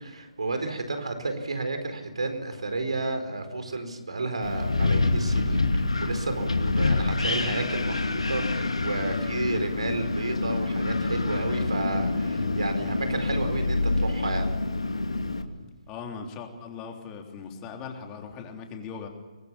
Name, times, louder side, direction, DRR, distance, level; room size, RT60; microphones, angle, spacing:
voice 1, 0.0-14.5, right 2 dB, 75° right, 7 dB, 4.6 m, -32 dB
Wind, 4.4-15.4, left 3 dB, 85° left, 2.5 m, -26 dB
voice 2, 15.9-19.1, left 5 dB, 20° left, 3 dB, 3.4 m, -39 dB
24.0 x 19.5 x 7.3 m, 1.3 s
figure-of-eight pair, 145°, 3 cm